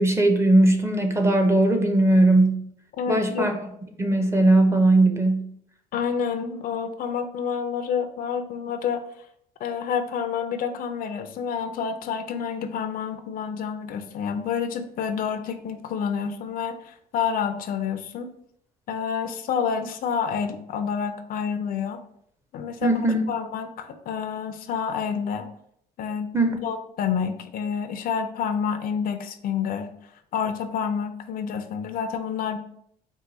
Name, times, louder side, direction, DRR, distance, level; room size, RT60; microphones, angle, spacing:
voice 1, 0.0-2.7 3.1-3.5 4.0-5.5 22.8-23.2 26.3-26.6, right 2 dB, 15° right, 4 dB, 0.6 m, -19 dB
voice 2, 3.0-3.5 5.9-9.0 9.6-18.3 18.9-22.0 22.5-23.0 23.3-25.5 26.0-26.3 26.6-29.9 30.3-32.6, left 7 dB, 60° left, 7 dB, 0.5 m, -28 dB
4.6 x 2.2 x 3.9 m, 0.68 s
cardioid pair, 110°, 17 cm